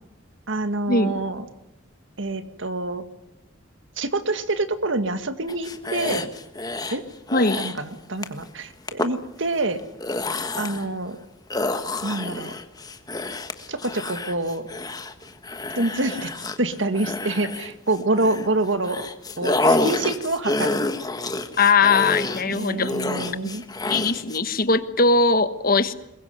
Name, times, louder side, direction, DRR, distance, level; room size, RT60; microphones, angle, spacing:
voice 1, 0.5-1.4 2.2-3.0 4.0-6.3 6.9-7.0 7.6-9.8 10.6-11.2 12.0-12.5 13.7-14.7 15.7-16.3 16.6-19.0 19.4-20.9 22.5-23.6, right 2 dB, 70° right, 10 dB, 1.9 m, -26 dB
sound 1, 5.5-7.0 7.3-7.8 8.2-8.4 8.9-9.1 9.8-10.9 11.5-18.5 18.8-24.4, left 2 dB, 20° left, 1.4 m, -28 dB
voice 2, 7.3-7.6 21.6-22.9 23.9-25.9, left 4 dB, 45° left, 12 dB, 1.3 m, -20 dB
23.0 x 21.5 x 9.4 m, 0.83 s
head